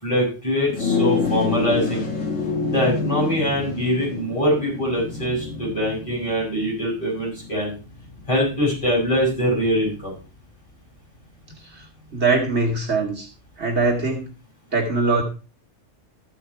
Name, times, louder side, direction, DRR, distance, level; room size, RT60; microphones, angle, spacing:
voice 1, 0.0-2.1 2.7-7.7 8.3-10.1, equal, 25° left, -4 dB, 6.3 m, -23 dB
sound 1, 0.7-10.3, left 4 dB, 80° left, 1.9 m, -28 dB
voice 2, 12.1-13.3 13.6-14.3 14.7-15.2, right 3 dB, 60° right, -1 dB, 2.7 m, -22 dB
14.5 x 5.7 x 4.5 m, 0.33 s
omnidirectional pair, 1.3 m